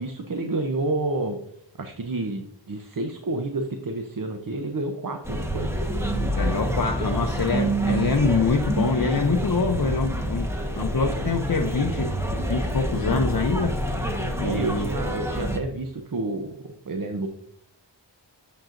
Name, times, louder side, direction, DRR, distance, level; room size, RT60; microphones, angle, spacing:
voice 1, 0.0-1.4 1.8-6.1 8.8-9.0 9.2-9.3 9.7-10.0 14.4-17.3, right 2 dB, 50° right, 5 dB, 0.8 m, -30 dB
sound 1, 5.2-15.6, right 1 dB, 5° right, 1.2 m, -27 dB
voice 2, 6.4-10.5 10.8-12.1 12.5-13.8 14.4-14.9, left 4 dB, 55° left, 4 dB, 0.7 m, -25 dB
9.0 x 7.4 x 2.5 m, 0.71 s
wide cardioid pair, 60°, 44 cm